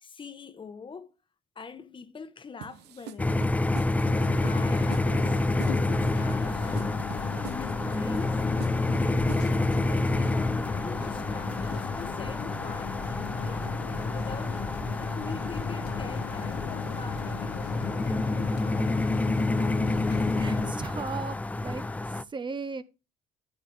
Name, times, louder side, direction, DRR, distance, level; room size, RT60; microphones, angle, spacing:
voice 1, 0.0-1.1 1.5-3.8 4.4-7.0 7.5-8.4 8.9-13.7 14.1-14.6 14.9-19.1, left 5 dB, 30° left, 1.0 m, -44 dB
sound 1, 2.6-10.0, right 11 dB, 85° right, 0.8 m, -45 dB
sound 2, 3.2-22.2, left 2 dB, 10° left, 0.4 m, -28 dB
sound 3, 4.0-20.7, left 12 dB, 80° left, 0.7 m, -38 dB
voice 2, 20.4-21.8 22.3-22.8, right 4 dB, 30° right, 0.8 m, -36 dB
11.5 x 8.1 x 3.3 m
cardioid pair, 110°, 17 cm